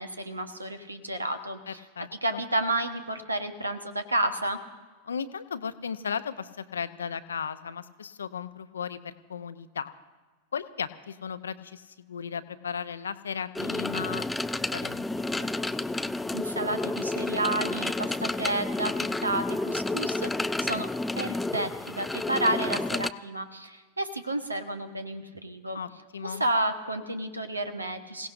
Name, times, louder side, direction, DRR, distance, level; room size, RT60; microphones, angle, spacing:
voice 1, 0.0-1.8 2.2-4.6 16.3-20.3 20.6-20.9 21.1-25.8 26.2-28.3, right 1 dB, 80° right, 9 dB, 1.2 m, -31 dB
voice 2, 1.7-2.4 5.0-9.9 10.5-14.3 14.7-15.5 25.7-26.4, left 7 dB, 70° left, 13 dB, 0.7 m, -36 dB
sound 1, 13.6-23.1, left 2 dB, 5° left, 0.4 m, -30 dB
27.0 x 17.0 x 2.6 m, 1.3 s
figure-of-eight pair, 90°, 0 cm